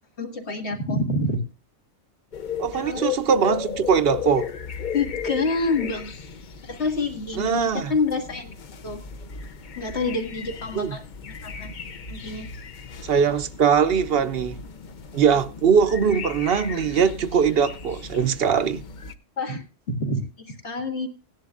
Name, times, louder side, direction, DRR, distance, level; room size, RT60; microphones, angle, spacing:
voice 1, 0.2-1.4 2.7-3.0 4.9-6.1 6.7-8.5 8.8-9.0 9.8-11.0 11.4-11.7 12.1-12.5 19.4-21.1, left 3 dB, 65° left, 2.2 m, -27 dB
sound 1, 2.3-19.1, left 7 dB, 45° left, 0.8 m, -36 dB
voice 2, 2.6-4.5 7.4-7.9 10.7-10.9 13.0-14.6 15.1-18.8, right 6 dB, 60° right, 0.8 m, -21 dB
17.5 x 10.5 x 2.5 m
omnidirectional pair, 1.3 m